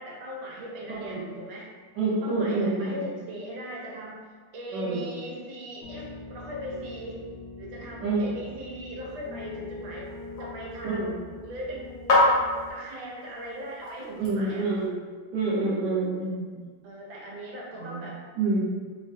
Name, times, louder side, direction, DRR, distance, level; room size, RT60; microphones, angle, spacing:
voice 1, 0.0-1.7 2.2-4.2 4.5-7.2 7.6-10.1 10.4-11.1 11.4-12.3 12.7-14.7 16.8-18.2, equal, 90° right, -3 dB, 1.5 m, -39 dB
voice 2, 0.9-1.3 2.0-2.9 4.7-5.1 8.0-8.3 10.8-11.1 14.2-15.0 15.3-16.5 17.7-18.0 18.3-18.7, right 3 dB, 70° right, -6 dB, 1.5 m, -27 dB
Piano, 5.8-12.7, left 3 dB, 70° left, 1.1 m, -43 dB
sound 1, 9.0-14.9, left 2 dB, 55° left, 1.1 m, -30 dB
3.5 x 2.3 x 2.7 m, 1.5 s
omnidirectional pair, 2.1 m